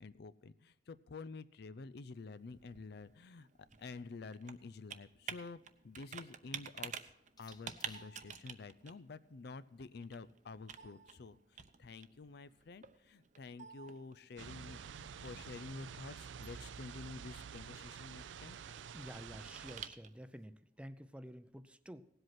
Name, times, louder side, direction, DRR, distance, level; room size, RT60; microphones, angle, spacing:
voice 1, 0.0-3.5 3.8-7.1 7.4-18.6, left 4 dB, 60° left, 15 dB, 0.5 m, -50 dB
Computer keyboard, 2.1-20.4, right 7 dB, 45° right, 0.7 m, -52 dB
sound 1, 5.8-8.3 9.2-11.3, left 4 dB, 20° left, 0.8 m, -66 dB
sound 2, 14.4-19.9, right 7 dB, 90° right, 0.5 m, -49 dB
voice 2, 18.9-22.1, equal, 5° right, 12 dB, 0.5 m, -50 dB
17.5 x 7.9 x 5.8 m, 0.82 s
head